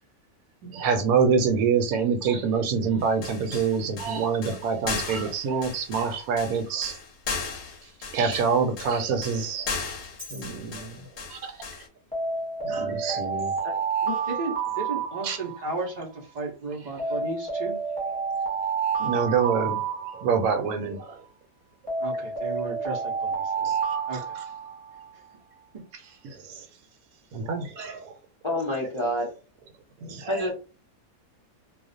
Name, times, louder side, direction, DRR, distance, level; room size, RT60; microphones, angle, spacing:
voice 1, 0.6-7.0 8.1-9.7 10.3-11.0 11.3-11.5 12.6-13.5 15.2-15.4 19.0-19.8 20.1-21.2 23.6-23.8 26.2-26.7 27.3-28.1 30.0-30.5, right 5 dB, 75° right, 1.0 m, -26 dB
sound 1, 3.0-11.9, left 5 dB, 60° left, 0.8 m, -36 dB
Alarm, 10.0-10.4 12.1-15.9 17.0-20.8 21.9-25.1, right 5 dB, 5° left, 0.8 m, -29 dB
voice 2, 14.3-17.8 22.0-23.7 24.1-24.4, right 3 dB, 60° right, 0.4 m, -34 dB
voice 3, 28.4-29.3 30.3-30.5, left 1 dB, 45° left, 0.4 m, -27 dB
2.4 x 2.1 x 2.5 m
omnidirectional pair, 1.5 m